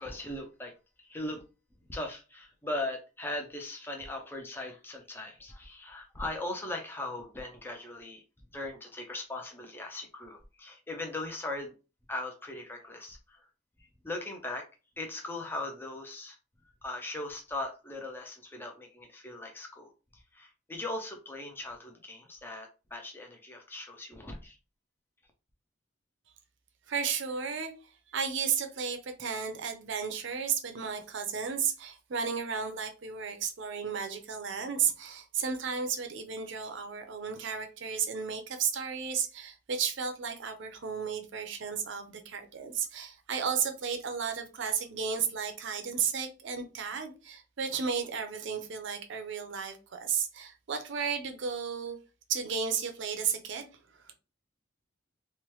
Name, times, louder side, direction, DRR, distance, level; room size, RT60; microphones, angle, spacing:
voice 1, 0.0-1.4 1.9-8.2 8.5-11.7 12.1-13.5 13.8-14.7 15.0-16.4 16.8-24.6, left 2 dB, 10° left, 0.4 m, -39 dB
voice 2, 26.9-27.7 28.1-52.0 52.3-53.7, right 6 dB, 65° right, 0.5 m, -33 dB
3.0 x 2.1 x 3.0 m
head